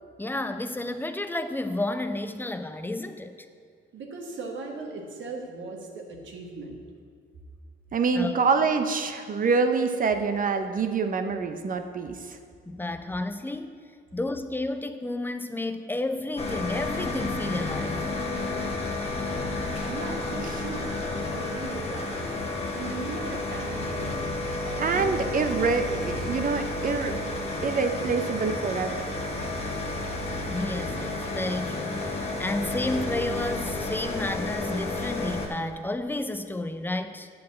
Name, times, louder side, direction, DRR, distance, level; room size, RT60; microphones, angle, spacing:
voice 1, 0.2-3.4 8.1-8.4 12.7-13.7 14.1-18.0 30.5-37.3, left 2 dB, 10° left, 9 dB, 0.5 m, -31 dB
voice 2, 3.9-6.8 8.3-8.5 19.9-20.9 21.2-24.2 24.6-25.2, right 3 dB, 70° right, 1 dB, 1.5 m, -38 dB
voice 3, 7.9-12.4 24.8-27.2 27.6-29.1, right 4 dB, 45° right, 7 dB, 0.7 m, -26 dB
sound 1, 16.4-35.5, left 2 dB, 30° left, 1.4 m, -31 dB
8.3 x 4.8 x 7.4 m, 2.2 s
cardioid pair, 90°, 20 cm